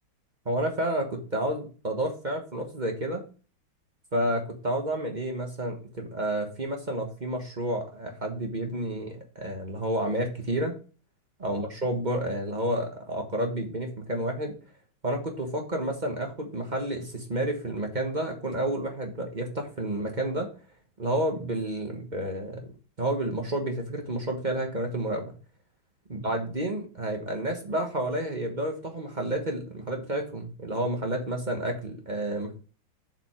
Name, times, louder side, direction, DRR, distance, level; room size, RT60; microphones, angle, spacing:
voice 1, 0.4-3.2 4.1-10.8 11.4-14.5 15.0-20.5 21.0-22.7 23.0-25.3 26.1-32.6, right 1 dB, 25° right, 2 dB, 1.2 m, -30 dB
7.5 x 5.3 x 4.5 m, 0.36 s
omnidirectional pair, 2.2 m